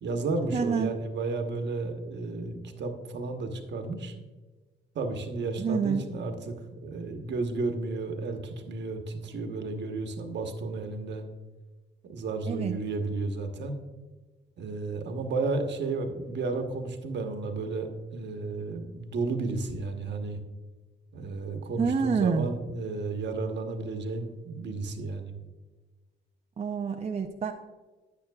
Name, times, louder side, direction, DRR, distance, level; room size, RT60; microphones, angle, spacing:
voice 1, 0.0-4.1 4.9-11.2 12.0-13.8 14.6-20.4 21.1-25.3, right 3 dB, 60° right, 5 dB, 1.2 m, -33 dB
voice 2, 0.5-0.9 5.6-6.0 12.5-12.7 21.8-22.5 26.6-27.5, right 5 dB, 35° right, 4 dB, 0.5 m, -27 dB
9.9 x 9.4 x 2.4 m, 1.2 s
cardioid pair, 90°, 20 cm